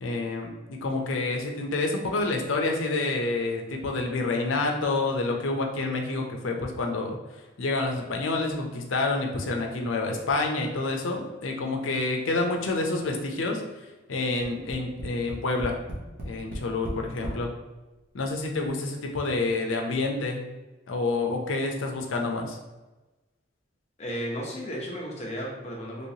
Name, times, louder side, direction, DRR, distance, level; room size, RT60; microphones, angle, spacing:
voice 1, 0.0-7.2 7.6-15.8 16.2-17.5 18.1-20.5 20.9-22.6, left 3 dB, 80° left, 2 dB, 0.5 m, -28 dB
Tap, 14.4-17.4 18.3-18.4 18.7-18.8, equal, 45° right, 0.6 m, -36 dB
voice 2, 24.0-26.1, equal, 35° left, -2 dB, 0.7 m, -34 dB
3.0 x 3.0 x 2.7 m, 1.1 s
head